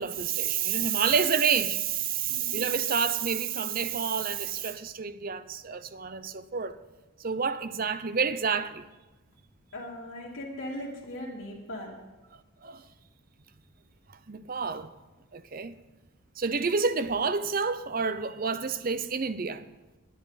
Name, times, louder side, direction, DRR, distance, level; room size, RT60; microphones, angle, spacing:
voice 1, 0.0-6.8 7.2-8.8 12.6-12.8 14.3-14.9 15.3-15.8 16.4-19.6, right 6 dB, 40° right, 0.6 m, -29 dB
voice 2, 2.3-2.7 9.7-12.0, left 1 dB, 80° left, 2.4 m, -39 dB
20.5 x 11.0 x 4.1 m
head